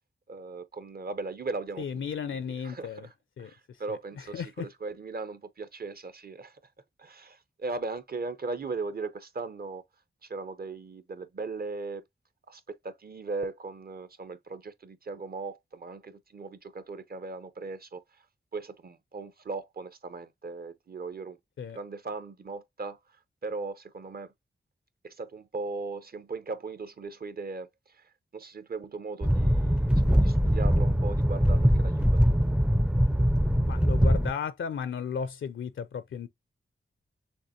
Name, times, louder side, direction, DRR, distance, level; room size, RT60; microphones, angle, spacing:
voice 1, 0.3-1.8 2.5-2.9 3.4-6.6 7.0-9.8 10.2-12.0 12.5-18.0 18.5-21.4 21.7-23.0 23.4-24.3 25.0-32.2, right 3 dB, 50° right, 0.8 m, -38 dB
voice 2, 1.8-3.1 3.4-4.7 21.6-21.8 33.6-36.3, left 6 dB, 80° left, 0.5 m, -35 dB
sound 1, 29.2-34.3, equal, 5° right, 0.4 m, -22 dB
6.5 x 2.9 x 2.7 m
wide cardioid pair, 85°, 20 cm